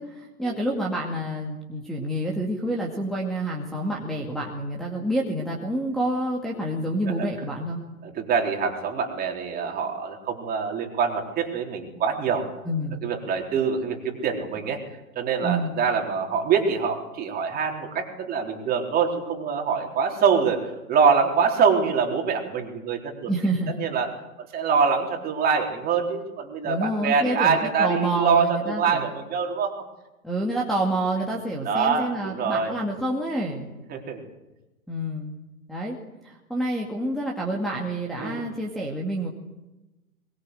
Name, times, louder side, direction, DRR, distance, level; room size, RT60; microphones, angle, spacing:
voice 1, 0.0-7.8 12.6-13.0 15.4-15.7 23.3-23.8 26.6-29.1 30.2-33.7 34.9-35.3 35.7-36.0 36.2-39.3, right 1 dB, ahead, -5 dB, 2.3 m, -28 dB
voice 2, 8.0-12.4 13.0-14.8 15.2-23.3 23.8-24.1 24.4-29.7 31.6-32.7 33.9-34.2 38.2-38.4, right 6 dB, 20° right, 2 dB, 3.9 m, -24 dB
22.5 x 21.5 x 8.0 m, 1.0 s
figure-of-eight pair, 120°, 44 cm